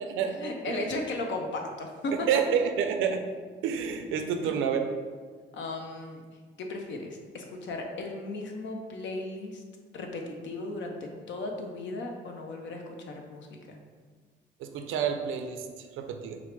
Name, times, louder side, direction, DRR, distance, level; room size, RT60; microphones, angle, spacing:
voice 1, 0.2-2.1 4.4-4.6 5.5-6.2 6.6-9.6 9.9-13.8, left 2 dB, 65° left, 2 dB, 0.7 m, -36 dB
voice 2, 2.3-3.3 3.6-4.9 14.6-16.4, right 7 dB, 90° right, 6 dB, 0.5 m, -29 dB
4.6 x 2.0 x 4.5 m, 1.5 s
cardioid pair, 90°, 20 cm